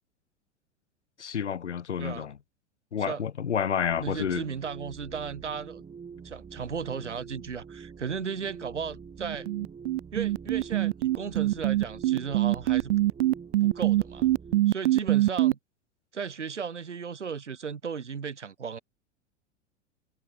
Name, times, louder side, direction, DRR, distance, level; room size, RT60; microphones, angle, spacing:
voice 1, 1.2-2.4 2.9-4.4, left 8 dB, 80° left, 1.7 m, -29 dB
sound 1, 3.8-14.7, right 6 dB, 20° right, 5.6 m, -45 dB
voice 2, 4.0-5.8 6.2-9.5 10.1-12.9 13.6-14.3 14.7-15.6 16.1-18.8, right 6 dB, 80° right, 2.7 m, -35 dB
sound 2, 9.2-15.5, right 15 dB, 60° right, 0.7 m, -23 dB
figure-of-eight pair, 95°, 35 cm